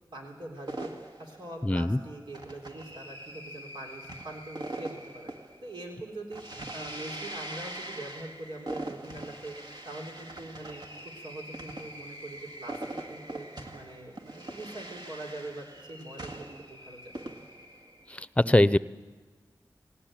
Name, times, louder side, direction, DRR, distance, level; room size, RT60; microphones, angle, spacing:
voice 1, 0.1-5.3 5.6-6.4 6.7-9.6 9.9-10.8 11.1-13.5 13.7-17.3, right 2 dB, 85° right, -1 dB, 3.7 m, -43 dB
sound 1, 0.7-18.2, right 1 dB, 60° right, 1.9 m, -42 dB
voice 2, 1.6-2.0 18.1-18.8, left 1 dB, 15° left, 16 dB, 0.7 m, -22 dB
19.5 x 17.5 x 9.0 m, 1.3 s
cardioid pair, 45°, 8 cm